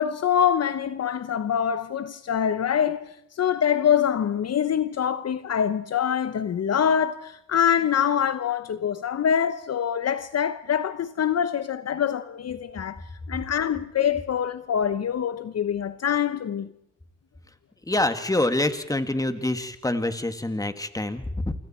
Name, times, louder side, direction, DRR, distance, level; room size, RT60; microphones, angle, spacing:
voice 1, 0.0-13.0 13.3-16.7, left 8 dB, 55° left, 1.0 m, -25 dB
voice 2, 17.8-21.6, left 1 dB, 10° left, 2.1 m, -26 dB
28.0 x 25.5 x 4.5 m
cardioid pair, 70°, 30 cm